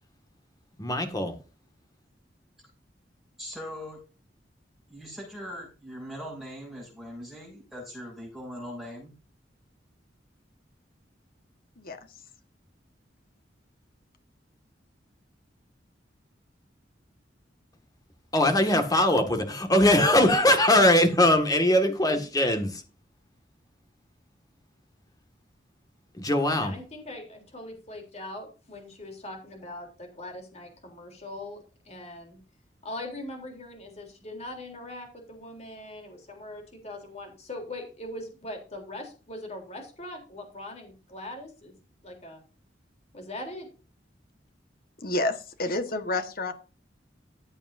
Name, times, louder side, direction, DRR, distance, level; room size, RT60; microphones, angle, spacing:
voice 1, 0.8-1.3 18.3-22.8 26.2-26.7, left 1 dB, 20° left, 2.0 m, -21 dB
voice 2, 3.4-4.0 4.9-9.1, equal, 5° right, 7.2 m, -40 dB
voice 3, 26.5-32.4 32.8-41.7 42.0-42.4 43.1-43.7, left 1 dB, 35° left, 3.6 m, -41 dB
voice 4, 45.0-46.5, left 2 dB, 55° left, 1.6 m, -29 dB
14.5 x 8.9 x 2.7 m
head